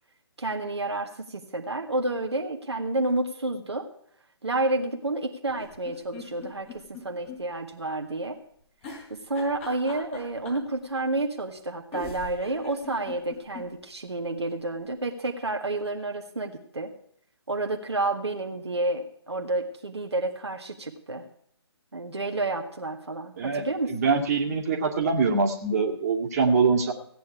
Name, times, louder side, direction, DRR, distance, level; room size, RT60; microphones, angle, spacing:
voice 1, 0.4-3.9 4.4-8.4 9.1-16.9 17.5-21.3 21.9-23.9, right 2 dB, 75° right, 2 dB, 1.7 m, -30 dB
sound 1, 5.5-7.4 7.7-7.8 8.8-10.7 11.6-11.7 11.9-13.7 14.1-14.2 14.4-14.5, left 3 dB, 25° left, 4.0 m, -41 dB
voice 2, 23.4-26.9, right 4 dB, 35° right, 1 dB, 2.2 m, -24 dB
17.0 x 9.3 x 4.7 m, 0.66 s
figure-of-eight pair, 140°, 14 cm